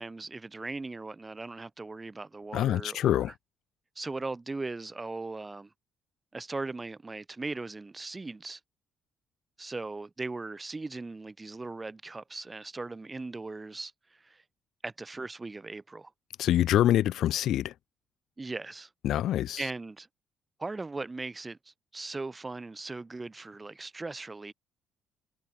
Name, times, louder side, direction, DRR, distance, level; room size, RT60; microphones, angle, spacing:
voice 1, 0.0-3.3 4.0-5.7 6.3-8.6 9.6-14.4 14.8-16.1 18.4-18.9 19.6-20.1 20.6-24.5, right 3 dB, 20° right, 7.6 m, -39 dB
voice 2, 2.5-3.3 16.4-17.7 19.0-19.6, left 12 dB, 70° left, 1.7 m, -25 dB
cardioid pair, 80°, 0 cm